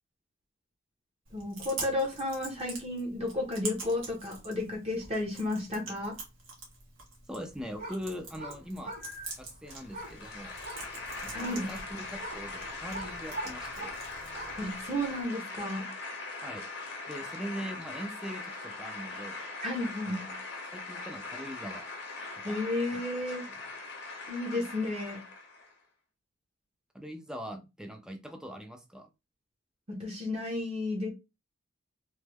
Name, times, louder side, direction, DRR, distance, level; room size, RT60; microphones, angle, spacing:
Chewing mastication, 1.2-15.2, right 4 dB, 75° right, 1.3 m, -46 dB
voice 1, 1.3-6.1 11.3-11.7 14.6-15.9 19.6-20.2 22.4-23.4 24.3-25.2 29.9-31.1, left 1 dB, 30° right, 0.8 m, -32 dB
voice 2, 7.3-8.9 9.4-10.5 11.2-13.9 16.4-16.6 17.1-19.4 20.1-20.4 20.7-21.9 22.4-22.6 22.9-23.0 23.3-23.6 26.9-29.1, equal, 5° right, 0.4 m, -41 dB
sound 1, 7.5-14.7, right 1 dB, 50° right, 1.7 m, -44 dB
sound 2, 9.7-25.7, left 3 dB, 55° left, 0.8 m, -41 dB
3.1 x 2.1 x 3.3 m
head